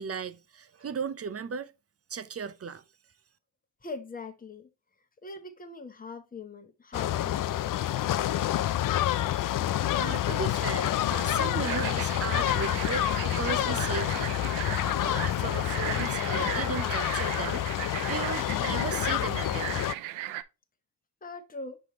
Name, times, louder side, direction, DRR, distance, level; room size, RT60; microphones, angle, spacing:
voice 1, 0.0-1.7 2.1-2.8 9.9-14.4 15.0-17.6 18.1-19.8, right 6 dB, 30° right, 0.6 m, -36 dB
voice 2, 3.8-4.7 5.2-7.9 21.2-21.8, left 3 dB, 20° left, 1.1 m, -42 dB
sound 1, 6.9-19.9, left 12 dB, 45° left, 0.4 m, -28 dB
sound 2, 11.6-20.4, right 14 dB, 80° right, 0.6 m, -37 dB
6.3 x 5.3 x 2.9 m
cardioid pair, 70°, 47 cm